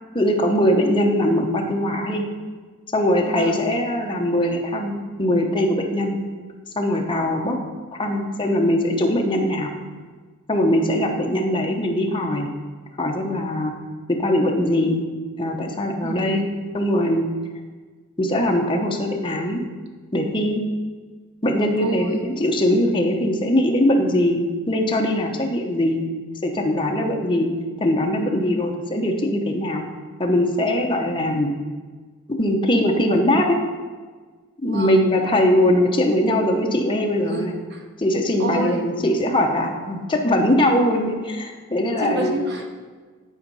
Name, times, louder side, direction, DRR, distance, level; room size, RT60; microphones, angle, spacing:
voice 1, 0.1-2.2 2.9-6.2 6.8-7.6 8.0-9.7 10.5-12.5 13.0-13.7 14.1-15.0 15.4-16.5 16.7-17.3 18.2-19.6 20.1-20.6 21.4-26.0 26.4-27.5 27.8-29.8 30.2-31.5 32.3-33.6 34.6-37.5 38.0-42.5, left 1 dB, 20° left, 1 dB, 0.9 m, -21 dB
voice 2, 3.3-3.6 16.0-16.4 21.8-22.2 34.6-35.0 37.3-37.9 38.4-38.9 42.0-42.7, right 3 dB, 50° right, 2 dB, 1.1 m, -29 dB
10.0 x 4.4 x 5.4 m, 1.4 s
head